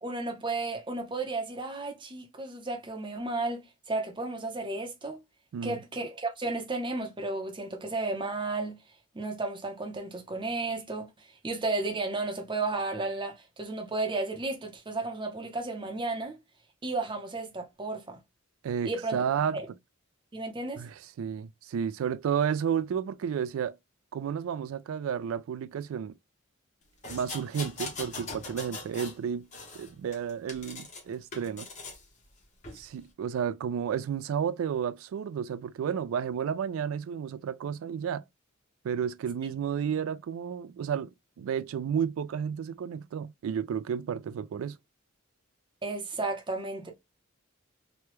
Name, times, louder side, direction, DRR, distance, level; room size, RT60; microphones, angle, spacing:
voice 1, 0.0-5.2 5.6-8.8 9.1-16.4 16.8-18.2 18.8-19.2 19.5-19.7 20.3-20.8 45.8-46.9, right 3 dB, 25° right, 0.7 m, -33 dB
voice 2, 18.6-19.6 20.8-23.8 24.1-26.2 27.1-29.4 29.7-31.7 32.7-38.2 38.8-44.8, right 7 dB, 75° right, 0.3 m, -32 dB
sound 1, 27.0-29.2 29.5-31.0 31.3-32.0 32.6-32.8, left 3 dB, 35° left, 1.0 m, -41 dB
3.1 x 2.2 x 2.9 m
head